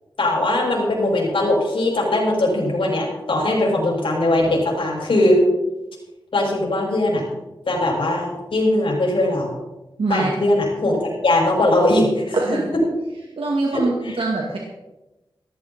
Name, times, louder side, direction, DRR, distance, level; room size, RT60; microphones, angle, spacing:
voice 1, 0.2-5.4 6.3-7.2 7.7-9.5 10.1-12.4 13.7-14.2, left 1 dB, 75° left, -2 dB, 6.5 m, -20 dB
voice 2, 10.0-10.3 12.3-12.7 13.4-14.6, right 3 dB, 90° right, -1 dB, 2.3 m, -23 dB
17.5 x 14.0 x 4.3 m, 1.0 s
wide cardioid pair, 115°, 9 cm